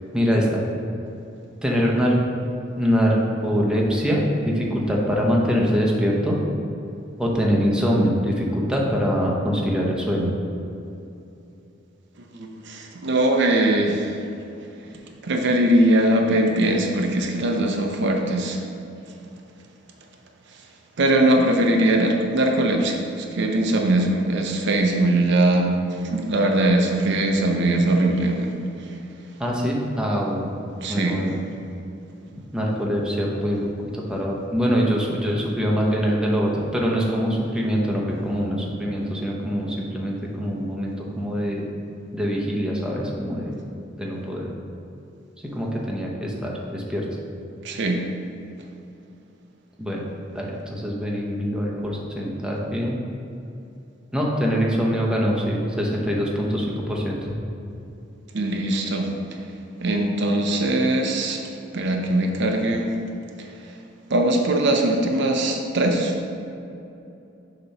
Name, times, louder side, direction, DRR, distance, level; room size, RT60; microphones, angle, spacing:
voice 1, 0.1-0.6 1.6-2.2 2.8-6.4 7.2-10.3 29.4-30.5 30.9-31.4 32.5-33.6 33.9-41.7 42.1-43.6 44.0-44.5 45.4-47.0 49.8-50.0 50.3-53.0 54.1-57.3, equal, 5° right, -3 dB, 0.8 m, -23 dB
voice 2, 12.3-14.2 15.2-18.6 21.0-28.6 28.9-29.0 30.8-31.3 47.6-48.0 58.3-59.4 59.8-61.4 61.7-62.9 63.4-63.5 64.1-66.2, right 1 dB, 65° right, 2 dB, 0.6 m, -21 dB
6.8 x 3.0 x 5.4 m, 2.8 s
head